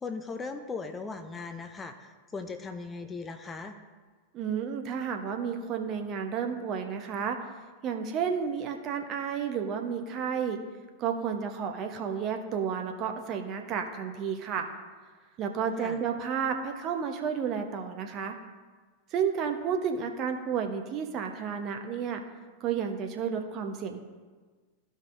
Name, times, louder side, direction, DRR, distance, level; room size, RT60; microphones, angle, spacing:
voice 1, 0.0-3.8 15.8-16.0, left 4 dB, 15° left, 8 dB, 0.5 m, -38 dB
voice 2, 4.3-7.4 7.8-10.6 11.0-14.7 15.4-18.4 19.1-22.2 22.6-24.0, right 7 dB, 35° right, 5 dB, 0.9 m, -31 dB
14.5 x 5.2 x 2.6 m, 1.4 s
figure-of-eight pair, 90°, 0 cm